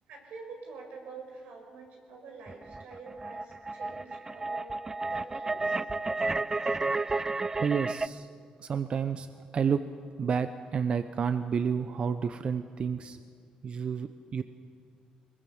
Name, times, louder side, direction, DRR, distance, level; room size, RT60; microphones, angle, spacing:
voice 1, 0.1-5.8, right 4 dB, 90° right, 2 dB, 5.2 m, -47 dB
sound 1, 2.5-8.1, right 3 dB, 20° right, 0.5 m, -32 dB
voice 2, 7.6-8.3 8.6-9.8 10.2-13.2 13.6-14.4, right 6 dB, 45° right, 11 dB, 0.8 m, -30 dB
22.5 x 21.5 x 7.3 m, 2.2 s
cardioid pair, 115°, 3 cm